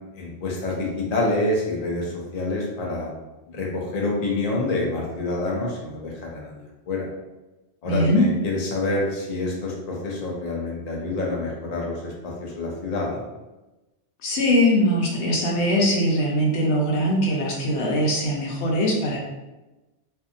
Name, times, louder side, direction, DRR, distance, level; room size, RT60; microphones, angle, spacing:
voice 1, 0.1-3.1 3.5-7.1 7.8-13.2, left 2 dB, 45° left, -3 dB, 0.6 m, -27 dB
voice 2, 7.8-8.2 14.2-19.2, equal, 90° left, -2 dB, 1.0 m, -21 dB
2.6 x 2.6 x 2.5 m, 1.1 s
omnidirectional pair, 1.1 m